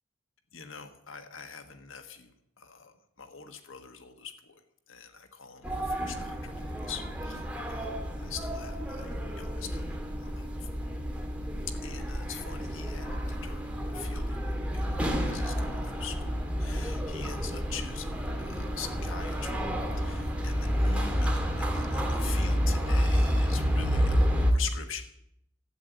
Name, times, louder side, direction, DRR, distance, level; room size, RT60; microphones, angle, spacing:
voice 1, 0.5-4.6 4.9-7.9 8.2-10.8 11.8-19.5 19.9-25.0, left 7 dB, 90° left, 7 dB, 1.4 m, -44 dB
sound 1, 5.6-24.5, equal, 5° right, 1.9 m, -30 dB
13.0 x 8.5 x 9.1 m, 0.77 s
head